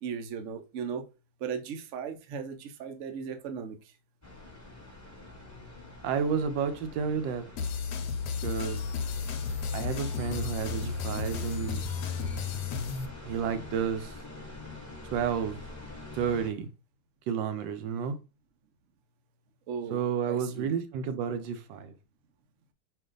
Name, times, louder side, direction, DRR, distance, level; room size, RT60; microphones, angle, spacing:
voice 1, 0.0-1.1 1.4-3.9 19.7-20.0 20.3-20.7, right 6 dB, 65° right, 0.8 m, -37 dB
sound 1, 4.2-16.5, left 2 dB, 10° left, 1.2 m, -45 dB
voice 2, 6.0-7.5 8.4-8.8 9.7-11.8 13.2-14.1 15.1-15.6 16.1-16.7 17.3-18.2 19.9-21.9, right 7 dB, 80° right, 1.3 m, -31 dB
sound 2, 7.6-13.1, left 5 dB, 70° left, 1.1 m, -33 dB
4.6 x 2.5 x 3.8 m
omnidirectional pair, 2.0 m